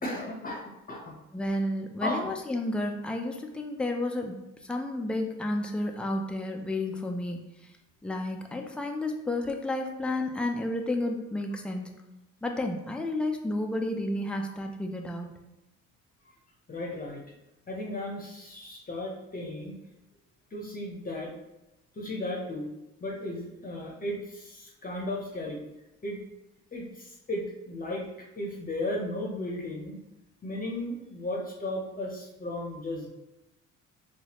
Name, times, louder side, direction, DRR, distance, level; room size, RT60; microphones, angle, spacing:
voice 1, 0.0-1.1 2.0-2.3 16.7-17.2 17.7-19.8 20.5-21.3 21.9-22.7 23.0-25.6 26.0-26.2 26.7-28.1 28.4-30.0 30.4-33.1, left 1 dB, 30° left, -2 dB, 0.8 m, -35 dB
voice 2, 1.3-7.4 8.0-11.9 12.4-15.3, left 1 dB, 5° left, 3 dB, 0.4 m, -31 dB
4.0 x 2.3 x 2.9 m, 0.94 s
cardioid pair, 90°, 30 cm